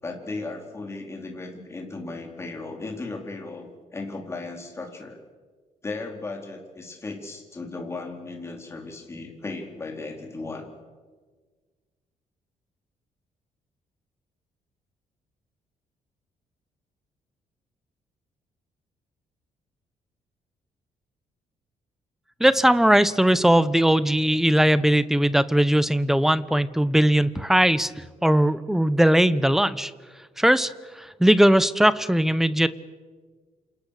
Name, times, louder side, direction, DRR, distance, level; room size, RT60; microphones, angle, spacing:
voice 1, 0.0-5.2 5.8-10.7, left 3 dB, 20° left, 2 dB, 4.2 m, -36 dB
voice 2, 22.4-29.9 30.4-30.7 31.0-32.7, right 1 dB, 5° right, 15 dB, 0.8 m, -19 dB
28.5 x 28.0 x 6.7 m, 1.5 s
cardioid pair, 165°, 14 cm